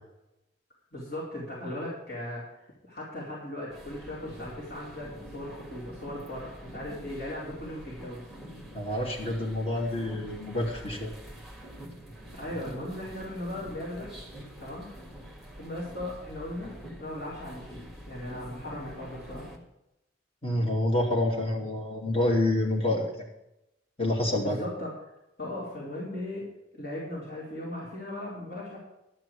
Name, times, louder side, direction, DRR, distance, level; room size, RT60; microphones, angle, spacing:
voice 1, 0.9-8.2 12.4-14.1 14.6-14.9 15.6-19.5 24.4-24.9 25.4-26.4 26.7-28.8, left 1 dB, 55° left, -7 dB, 4.6 m, -38 dB
sound 1, 3.7-19.6, equal, ahead, 1.8 m, -46 dB
voice 2, 8.7-11.1 20.4-23.1 24.0-24.6, left 1 dB, 30° left, -1 dB, 2.9 m, -27 dB
12.5 x 6.2 x 8.7 m, 0.88 s
head